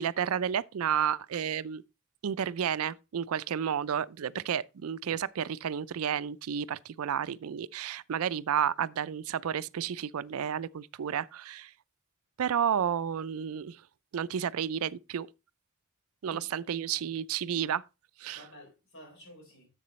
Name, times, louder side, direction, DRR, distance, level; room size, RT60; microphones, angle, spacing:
voice 1, 0.0-1.8 2.2-11.7 12.4-13.8 14.1-15.3 16.2-17.8 18.2-18.4, right 8 dB, 80° right, 0.4 m, -31 dB
voice 2, 16.3-17.1 18.3-19.7, equal, 60° left, 4.3 m, -53 dB
11.0 x 7.6 x 3.1 m
head